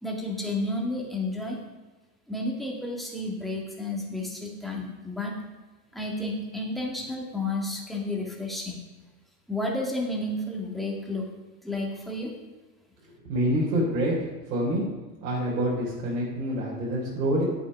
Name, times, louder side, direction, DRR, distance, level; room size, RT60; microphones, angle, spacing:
voice 1, 0.0-1.6 2.3-5.3 5.9-8.8 9.5-11.2 11.6-12.3, left 2 dB, ahead, -2 dB, 1.8 m, -31 dB
voice 2, 13.3-14.1 14.5-14.8 15.2-17.4, right 1 dB, 70° right, -7 dB, 4.1 m, -26 dB
9.7 x 8.3 x 5.4 m, 1.2 s
supercardioid pair, 135°, 50 cm